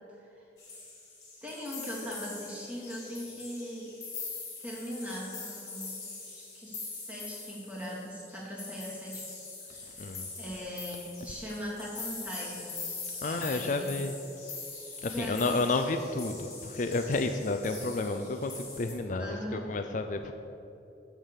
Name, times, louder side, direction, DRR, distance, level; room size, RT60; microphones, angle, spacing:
sound 1, 0.6-18.9, left 4 dB, 20° left, 2.8 m, -43 dB
voice 1, 1.4-3.9 4.6-9.2 9.9-10.0 10.4-12.8 13.2-13.9 15.1-15.7 19.2-19.6, equal, 10° right, -6 dB, 2.7 m, -40 dB
voice 2, 10.0-10.3 13.2-14.2 15.0-20.3, left 3 dB, 45° left, 6 dB, 0.5 m, -31 dB
8.4 x 7.4 x 7.3 m, 2.9 s
head